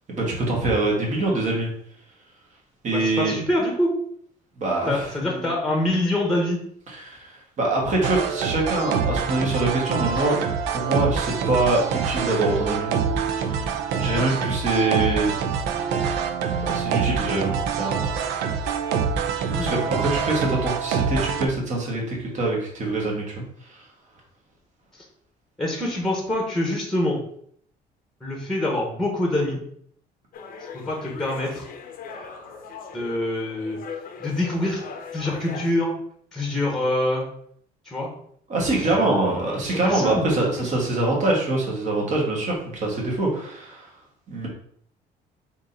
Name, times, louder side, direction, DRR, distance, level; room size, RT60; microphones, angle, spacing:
voice 1, 0.1-1.7 2.8-3.4 4.6-5.5 6.9-10.4 10.7-12.9 13.4-15.3 16.6-18.0 19.6-23.9 38.5-43.9 44.3-44.5, right 2 dB, 45° right, -2 dB, 1.6 m, -24 dB
voice 2, 2.9-3.9 4.9-6.6 14.1-14.3 19.5-20.0 24.9-25.0 25.6-27.2 28.2-29.6 30.6-31.7 32.1-32.6 32.9-33.8 34.2-34.8 35.1-35.9 36.3-37.3 37.8-38.1 38.8-40.3 40.6-40.7, left 1 dB, ahead, 0 dB, 1.0 m, -26 dB
sound 1, 8.0-21.5, right 6 dB, 90° right, 0.5 m, -25 dB
sound 2, 30.3-35.7, left 6 dB, 55° left, 0.7 m, -39 dB
3.8 x 2.8 x 3.8 m, 0.64 s
cardioid pair, 110°, 17 cm